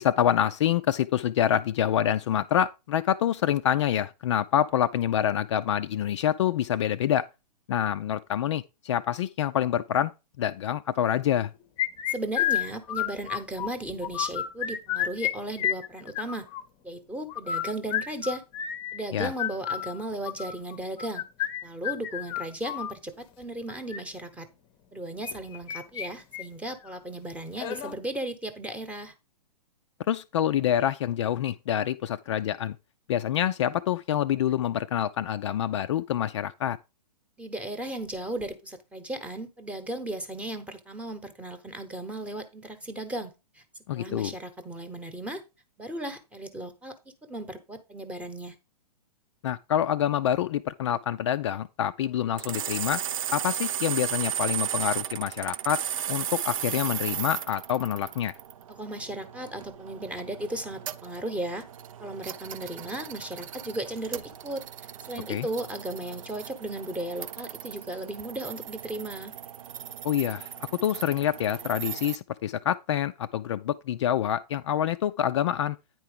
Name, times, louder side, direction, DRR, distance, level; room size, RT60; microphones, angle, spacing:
voice 1, 0.0-7.3 7.7-10.1 10.4-11.5 19.1-19.3 30.1-32.8 33.1-36.8 43.9-44.3 49.4-53.0 53.3-55.8 56.1-58.3 65.3-65.5 70.0-70.5 70.8-75.8, left 10 dB, 45° left, 0.4 m, -26 dB
sound 1, 11.8-13.7 14.0-15.3 15.6-16.6 17.3-22.9 23.7-24.0 25.2-26.1 26.3-26.4 26.9-27.0 27.6-27.9, left 11 dB, 25° left, 0.8 m, -30 dB
voice 2, 12.1-16.5 16.8-18.4 18.9-21.2 21.6-24.5 24.9-29.1 37.4-43.6 43.9-45.4 45.8-46.9 47.3-48.6 58.7-61.6 62.0-64.6 65.1-69.3, right 1 dB, 5° right, 1.0 m, -35 dB
sound 2, 52.4-72.2, right 9 dB, 55° right, 0.5 m, -36 dB
9.3 x 4.6 x 4.9 m
figure-of-eight pair, 120°, 21 cm